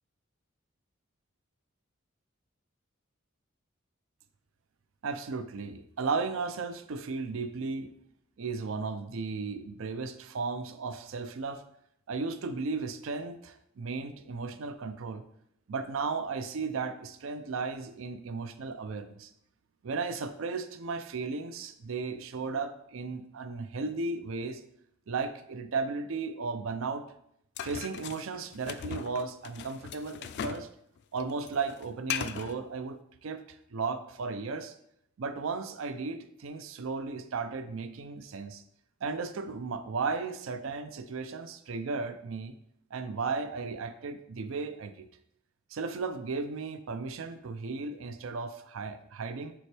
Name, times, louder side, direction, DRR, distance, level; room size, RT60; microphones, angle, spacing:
voice 1, 5.0-7.9 8.4-11.6 12.1-15.2 15.7-19.3 19.8-24.6 25.1-27.0 27.6-30.7 31.1-34.7 35.2-38.6 39.0-42.6 42.9-45.1 45.7-49.5, right 4 dB, 70° right, 10 dB, 0.5 m, -35 dB
sound 1, 27.6-30.7 31.0-32.6, left 8 dB, 55° left, 0.3 m, -38 dB
6.9 x 4.3 x 3.3 m, 0.73 s
head